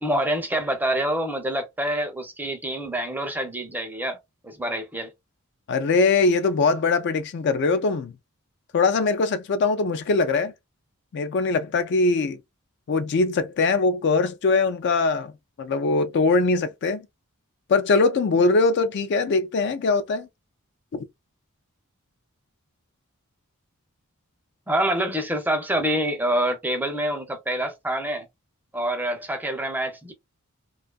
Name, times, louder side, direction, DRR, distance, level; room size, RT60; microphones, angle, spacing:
voice 1, 0.0-4.2 4.4-5.1 24.7-28.2 28.7-30.1, right 1 dB, 10° right, 0.5 m, -26 dB
voice 2, 5.7-8.1 8.7-10.5 11.1-12.4 12.9-15.3 15.6-17.1 17.7-20.3 20.9-21.0, left 3 dB, 50° left, 0.4 m, -22 dB
2.5 x 2.3 x 2.2 m
head